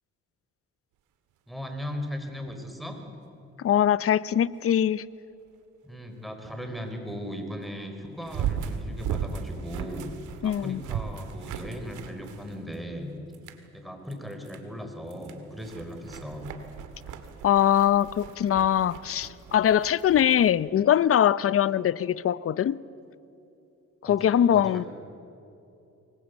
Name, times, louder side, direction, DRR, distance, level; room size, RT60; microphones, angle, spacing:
voice 1, 1.5-3.0 5.8-10.1 10.4-13.1 13.7-16.5 24.0-24.8, equal, ahead, 5 dB, 4.4 m, -37 dB
sound 1, 1.8-1.9 8.2-13.0 13.3-13.7 14.1-14.6 15.1-20.5, right 8 dB, 90° right, 2.1 m, -37 dB
voice 2, 3.6-5.0 10.4-10.8 17.4-22.8 24.0-24.8, left 10 dB, 50° left, 19 dB, 0.7 m, -22 dB
24.0 x 21.0 x 8.2 m, 2.8 s
cardioid pair, 90°, 30 cm